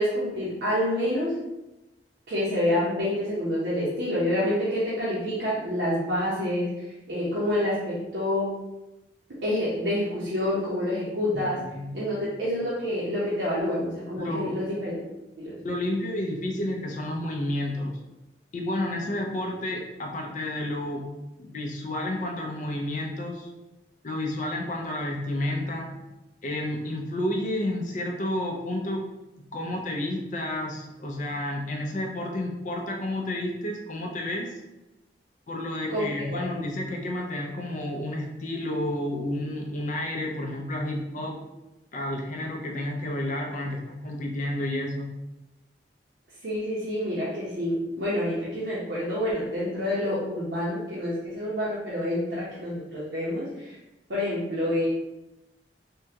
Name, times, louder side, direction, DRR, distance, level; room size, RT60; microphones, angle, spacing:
voice 1, 0.0-1.4 2.3-8.5 9.4-11.6 11.9-15.0 15.4-15.5 35.9-36.6 46.4-53.7 54.1-54.9, left 1 dB, 75° right, -8 dB, 0.8 m, -28 dB
voice 2, 11.7-12.1 14.2-14.6 15.6-18.0 18.5-21.1 21.4-23.5 24.0-26.0 26.4-29.0 29.4-34.6 35.5-41.4 41.9-45.1, left 1 dB, 45° left, 1 dB, 0.5 m, -31 dB
3.6 x 2.2 x 2.8 m, 0.97 s
head